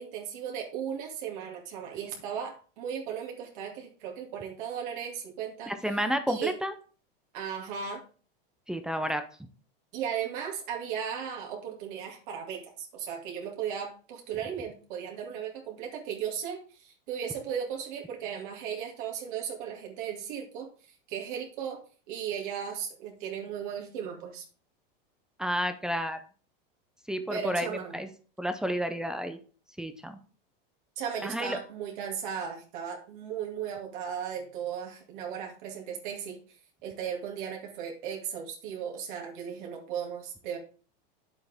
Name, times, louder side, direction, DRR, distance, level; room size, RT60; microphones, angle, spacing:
voice 1, 0.0-6.0 6.3-6.6 7.3-8.0 9.9-21.8 22.1-24.4 27.3-28.0 31.0-40.6, right 8 dB, 55° right, 0 dB, 2.5 m, -36 dB
voice 2, 5.7-6.7 8.7-9.2 25.4-26.2 27.1-28.1 28.4-29.4 29.8-30.2 31.2-31.6, equal, ahead, 8 dB, 0.6 m, -31 dB
9.6 x 7.9 x 3.5 m, 0.40 s
supercardioid pair, 155°, 29 cm